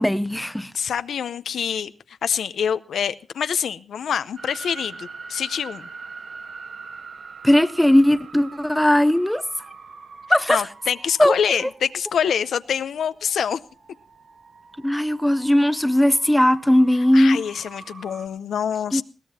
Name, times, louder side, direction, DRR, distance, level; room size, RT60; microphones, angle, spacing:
voice 1, 0.0-0.7 7.4-9.4 10.3-10.6 11.2-11.4 14.8-17.4 18.9-19.0, left 1 dB, 5° left, 0.6 m, -18 dB
voice 2, 0.7-5.9 10.5-13.6 17.1-19.0, left 8 dB, 85° left, 0.7 m, -26 dB
sound 1, 4.4-18.3, right 4 dB, 65° right, 2.2 m, -43 dB
21.0 x 17.0 x 2.8 m
wide cardioid pair, 110°, 0 cm